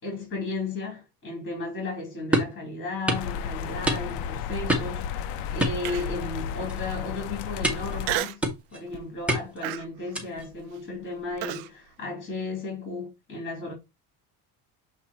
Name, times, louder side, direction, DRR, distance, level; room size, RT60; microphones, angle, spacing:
voice 1, 0.0-5.2 5.5-8.4 8.7-13.7, left 3 dB, 30° left, 3.7 m, -34 dB
sound 1, 2.3-2.6 3.1-3.3 3.9-4.3 4.7-5.0 5.6-6.4 6.7-6.9 7.6-8.0 8.4-8.8 9.3-9.7 10.1-10.5, right 1 dB, 5° right, 1.5 m, -27 dB
sound 2, 3.1-8.2, left 7 dB, 75° left, 0.8 m, -33 dB
Human voice, 5.9-6.3 6.8-6.9 8.0-8.5 8.9-9.2 9.6-11.7, right 14 dB, 80° right, 0.7 m, -32 dB
8.1 x 2.8 x 4.3 m
cardioid pair, 120°, 42 cm